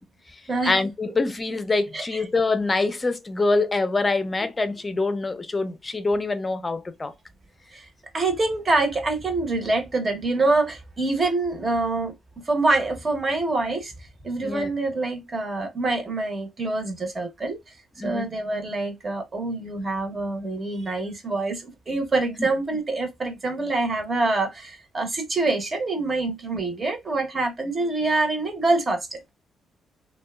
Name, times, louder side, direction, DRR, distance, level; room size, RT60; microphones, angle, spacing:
voice 1, 0.6-7.1 14.4-14.7 18.0-18.3 22.4-22.5, left 3 dB, 25° left, 0.5 m, -25 dB
voice 2, 8.1-12.1 12.4-17.6 18.0-29.2, right 2 dB, 35° right, 0.9 m, -25 dB
2.7 x 2.2 x 2.2 m
cardioid pair, 90°, 0 cm